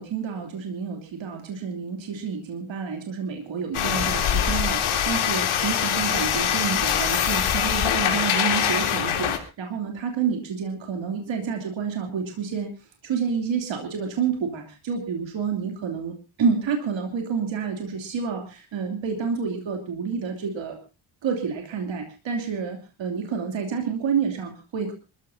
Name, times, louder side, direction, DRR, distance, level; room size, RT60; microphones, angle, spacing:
voice 1, 0.0-12.7 13.0-20.8 21.2-24.9, right 6 dB, 65° right, 3 dB, 3.1 m, -29 dB
sound 1, 3.7-9.4, left 9 dB, 80° left, 3.3 m, -23 dB
26.5 x 14.5 x 2.8 m, 0.30 s
cardioid pair, 130°, 49 cm